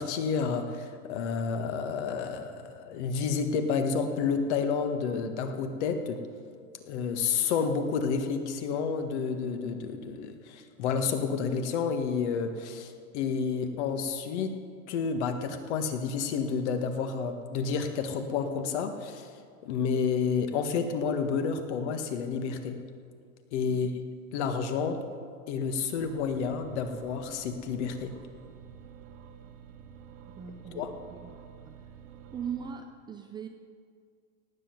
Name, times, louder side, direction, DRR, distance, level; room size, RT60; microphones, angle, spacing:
voice 1, 0.0-6.2 6.8-14.6 14.9-19.3 19.6-22.8 23.5-23.9 24.3-25.0 25.5-28.2 30.8-30.9, left 5 dB, 55° left, 7 dB, 1.7 m, -30 dB
sound 1, 26.0-32.7, right 8 dB, 65° right, 1.7 m, -49 dB
voice 2, 30.3-31.3 31.6-31.7 32.3-33.5, right 7 dB, 10° right, 4 dB, 0.4 m, -40 dB
18.0 x 7.7 x 7.9 m, 2.1 s
supercardioid pair, 140°, 40 cm